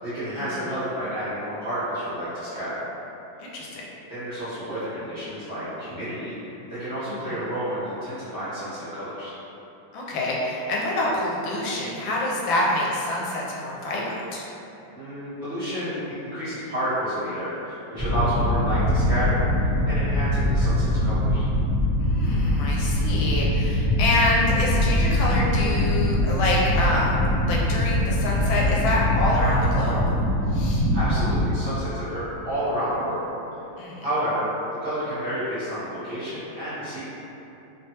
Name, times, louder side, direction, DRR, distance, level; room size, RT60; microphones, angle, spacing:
voice 1, 0.0-2.8 4.1-9.3 14.9-19.4 19.8-21.4 30.9-33.3 34.0-37.0, equal, 40° right, -15 dB, 0.9 m, -30 dB
voice 2, 3.4-3.8 7.1-7.2 9.9-14.4 22.0-27.2 27.4-30.1 30.5-30.9 33.8-34.0, left 1 dB, 85° left, -4 dB, 1.3 m, -26 dB
sound 1, 18.0-31.5, left 1 dB, 5° right, 0.9 m, -22 dB
3.1 x 2.2 x 2.8 m, 3.0 s
omnidirectional pair, 2.1 m